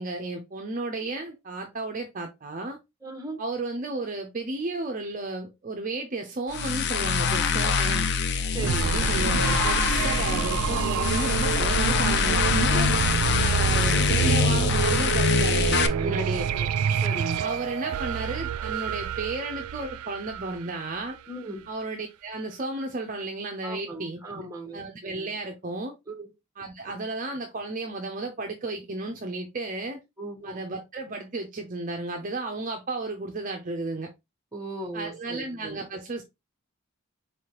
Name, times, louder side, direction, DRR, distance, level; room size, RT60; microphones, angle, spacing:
voice 1, 0.0-2.8 3.4-8.1 8.8-12.9 13.4-16.5 17.4-21.2 21.7-24.4 24.7-26.0 26.6-30.0 30.4-34.1 34.9-36.2, right 2 dB, 35° right, 0.5 m, -33 dB
voice 2, 3.0-3.4 8.5-9.1 16.0-16.7 17.0-17.5 21.3-21.7 23.6-24.8 26.1-26.3 30.2-30.6 34.5-35.9, right 2 dB, 15° right, 0.9 m, -37 dB
sound 1, 6.5-15.9, left 5 dB, 50° left, 0.4 m, -24 dB
sound 2, 8.6-21.3, right 7 dB, 90° right, 0.3 m, -28 dB
4.4 x 3.3 x 2.8 m
head